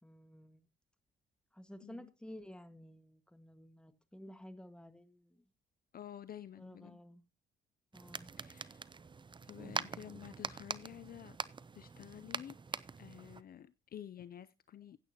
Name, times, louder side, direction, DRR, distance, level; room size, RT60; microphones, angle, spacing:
voice 1, 0.0-0.6 1.5-5.4 6.6-7.2 7.9-8.3, left 1 dB, 5° left, 1.6 m, -53 dB
voice 2, 1.8-2.1 5.9-7.0 8.4-8.9 9.4-11.4 11.7-12.6 13.0-15.0, left 10 dB, 50° left, 0.5 m, -50 dB
sound 1, 7.9-13.4, right 5 dB, 25° right, 0.6 m, -44 dB
15.5 x 9.3 x 2.9 m
cardioid pair, 90°, 20 cm